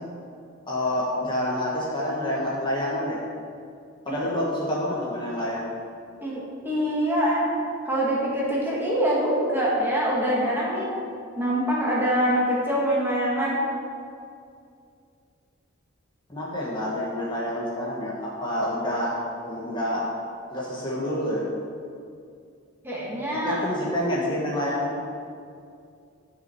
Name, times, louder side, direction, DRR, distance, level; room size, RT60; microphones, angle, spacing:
voice 1, 0.7-3.2 4.0-5.6 16.3-19.2 19.4-20.1 20.5-21.5 23.3-25.0, left 1 dB, 25° left, -6 dB, 1.5 m, -28 dB
voice 2, 6.2-7.5 7.8-10.9 11.4-13.6 22.8-23.6, equal, 10° right, -6 dB, 2.1 m, -24 dB
11.5 x 6.2 x 4.7 m, 2.4 s
head